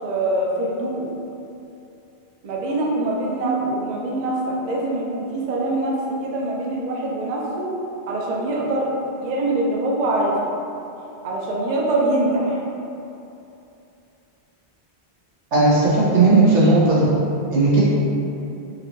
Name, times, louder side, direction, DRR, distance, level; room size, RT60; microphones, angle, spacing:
voice 1, 0.0-1.0 2.4-5.9 6.2-7.7 8.1-8.9 9.2-10.3 11.2-12.6, right 2 dB, 50° right, -3 dB, 0.6 m, -23 dB
voice 2, 15.5-17.0 17.5-17.8, right 3 dB, 85° right, -8 dB, 1.3 m, -15 dB
4.2 x 2.9 x 2.7 m, 2.8 s
omnidirectional pair, 1.1 m